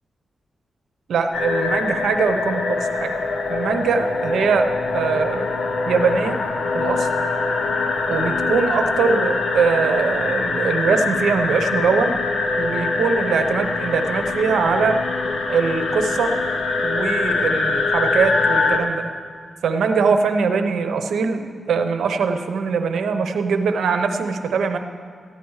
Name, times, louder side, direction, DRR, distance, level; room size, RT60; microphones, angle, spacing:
voice 1, 1.1-3.1 3.5-4.7 4.9-5.5 5.9-6.4 6.7-7.1 8.1-12.2 12.6-15.0 15.5-16.3 16.8-19.1 19.6-24.8, right 5 dB, 90° right, 7 dB, 0.8 m, -22 dB
sound 1, 1.3-18.8, left 3 dB, 65° left, 1.2 m, -23 dB
15.0 x 11.0 x 4.8 m, 2.1 s
cardioid pair, 100°, 0 cm